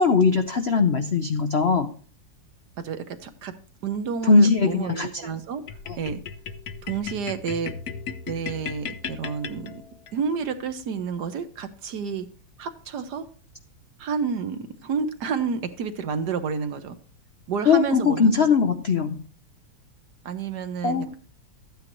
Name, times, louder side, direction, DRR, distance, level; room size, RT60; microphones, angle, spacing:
voice 1, 0.0-1.9 4.2-5.1 5.9-6.0 17.7-19.2 20.8-21.1, left 4 dB, 90° left, 6 dB, 0.5 m, -20 dB
voice 2, 2.8-5.6 6.0-6.2 6.8-7.7 8.3-9.8 10.1-12.3 12.6-13.3 14.0-17.0 17.5-18.3 20.2-21.2, right 6 dB, 60° right, 9 dB, 1.4 m, -30 dB
sound 1, 5.7-10.1, left 6 dB, 65° left, 1.0 m, -36 dB
13.0 x 9.0 x 3.0 m, 0.42 s
omnidirectional pair, 2.2 m